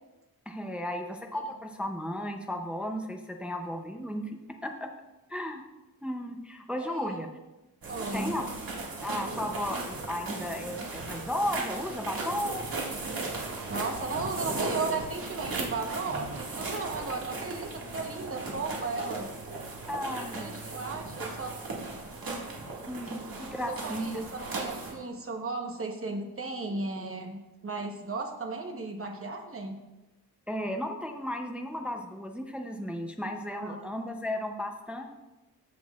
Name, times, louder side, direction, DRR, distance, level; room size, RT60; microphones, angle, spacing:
voice 1, 0.5-4.9 5.3-5.6 6.0-7.3 8.1-8.5 9.0-12.7 19.9-20.6 22.9-24.2 30.5-35.1, left 1 dB, 5° right, 3 dB, 0.5 m, -34 dB
voice 2, 6.8-7.3 7.9-8.4 13.7-19.3 20.1-21.5 23.7-29.8 33.5-33.9, right 3 dB, 35° right, 4 dB, 1.0 m, -35 dB
sound 1, 7.8-24.9, right 3 dB, 65° right, 1.9 m, -37 dB
14.5 x 6.2 x 2.4 m, 1.0 s
wide cardioid pair, 175°, 37 cm